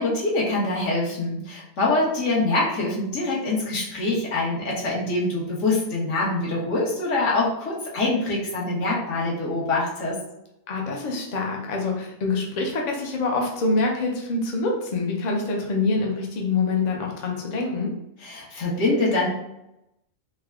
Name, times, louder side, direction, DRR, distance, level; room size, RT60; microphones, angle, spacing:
voice 1, 0.0-10.2 18.2-19.3, left 2 dB, 70° left, -5 dB, 1.4 m, -24 dB
voice 2, 10.7-17.9, left 3 dB, 45° left, 0 dB, 0.6 m, -25 dB
3.5 x 2.2 x 3.5 m, 0.84 s
omnidirectional pair, 1.3 m